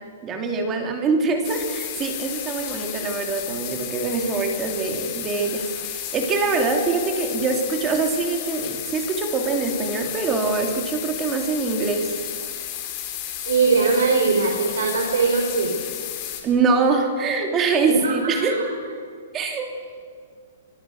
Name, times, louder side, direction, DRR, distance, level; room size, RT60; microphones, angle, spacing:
voice 1, 0.2-12.2 16.4-18.5 19.3-19.9, right 4 dB, 15° right, 4 dB, 2.9 m, -24 dB
sound 1, 1.4-16.4, left 11 dB, 25° left, 3.6 m, -32 dB
voice 2, 13.5-15.7 17.9-18.6, right 4 dB, 80° right, 1 dB, 4.9 m, -21 dB
25.0 x 24.0 x 6.6 m, 2.1 s
hypercardioid pair, 175°, 0 cm